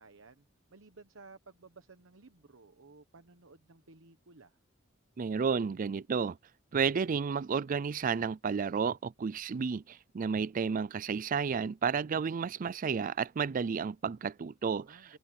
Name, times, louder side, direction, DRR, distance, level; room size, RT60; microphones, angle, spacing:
voice 1, 0.0-4.6 14.8-15.2, right 3 dB, 80° right, 1.0 m, -56 dB
voice 2, 5.2-6.4 6.7-15.2, right 6 dB, 45° right, 0.4 m, -32 dB
head